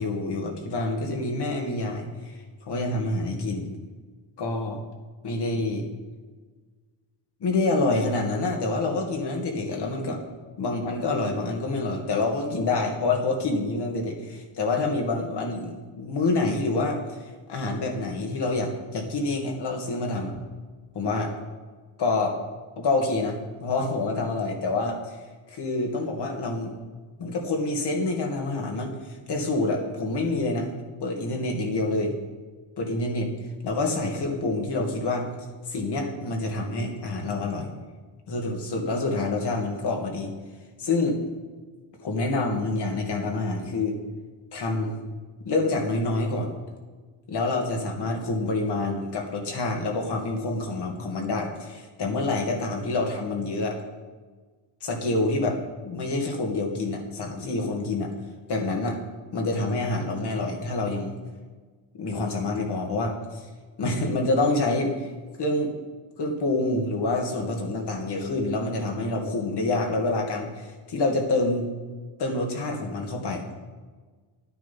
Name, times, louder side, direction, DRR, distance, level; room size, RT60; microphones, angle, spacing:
voice 1, 0.0-2.4 2.7-3.8 4.4-4.8 5.2-5.9 7.4-10.2 10.6-20.4 20.9-21.4 22.0-22.4 22.8-25.2 25.5-26.7 27.2-28.9 29.3-30.7 31.0-32.1 32.8-35.3 35.7-37.7 38.3-40.3 40.8-41.2 42.0-44.0 44.5-45.0 45.4-46.5 47.3-53.8 54.8-58.1 58.5-59.0 59.3-61.2 61.9-63.4 63.8-65.1 65.4-65.7 66.2-71.7 72.2-73.4, left 2 dB, 55° left, 2 dB, 2.5 m, -27 dB
12.0 x 9.5 x 6.0 m, 1.4 s
cardioid pair, 125°, 49 cm